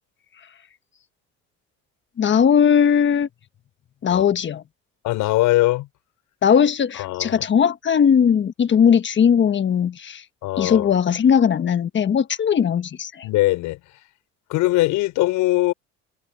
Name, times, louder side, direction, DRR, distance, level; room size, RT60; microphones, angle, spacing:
voice 1, 2.2-3.3 4.0-4.6 6.4-10.2 10.6-13.3, left 7 dB, 40° left, 1.3 m, -18 dB
voice 2, 5.0-5.9 6.9-7.4 10.4-10.9 13.2-13.8 14.5-15.7, left 18 dB, 80° left, 5.9 m, -21 dB
cardioid pair, 105°, 30 cm